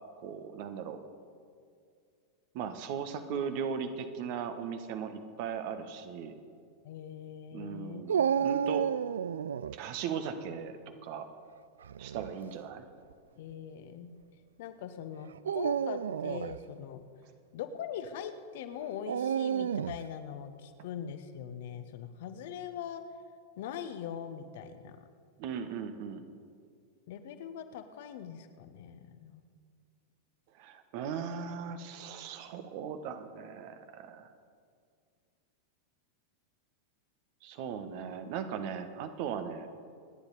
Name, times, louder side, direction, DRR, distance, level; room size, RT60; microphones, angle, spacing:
voice 1, 0.2-1.0 2.5-6.4 7.5-8.2 8.4-8.8 9.7-11.3 12.0-12.8 25.4-26.2 30.5-34.3 37.4-39.7, right 7 dB, 45° right, 9 dB, 1.2 m, -38 dB
voice 2, 6.8-8.1 8.4-8.5 13.4-14.1 14.6-17.0 17.5-23.0 23.6-25.0 27.1-29.4, left 8 dB, 55° left, 9 dB, 1.0 m, -42 dB
Dog, 8.1-9.8 11.8-12.3 13.1-13.2 15.3-16.6 19.1-20.1, right 8 dB, 65° right, 0.3 m, -31 dB
28.0 x 10.0 x 4.1 m, 2.2 s
figure-of-eight pair, 90°, 0 cm